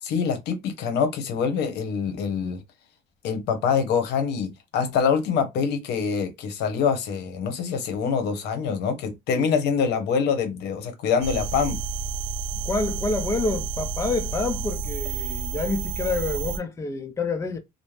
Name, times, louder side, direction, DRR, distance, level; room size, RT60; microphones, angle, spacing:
voice 1, 0.1-2.6 3.2-11.8, left 6 dB, 80° left, 0.8 m, -25 dB
sound 1, 11.2-16.6, right 5 dB, 85° right, 0.5 m, -30 dB
voice 2, 12.6-17.6, left 3 dB, 15° left, 0.5 m, -28 dB
2.5 x 2.0 x 3.1 m
cardioid pair, 110°, 17 cm